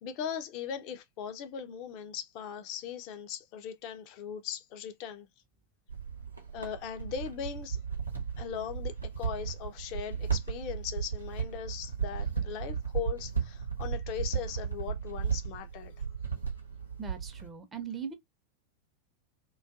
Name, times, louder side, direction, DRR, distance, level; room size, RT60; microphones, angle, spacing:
voice 1, 0.0-5.3 6.5-7.8 8.4-15.9, left 8 dB, 40° left, 0.5 m, -39 dB
sound 1, 5.9-17.5, right 7 dB, 85° right, 0.8 m, -35 dB
voice 2, 17.0-18.1, right 6 dB, 20° right, 0.6 m, -39 dB
2.5 x 2.3 x 2.3 m
figure-of-eight pair, 90°, 0 cm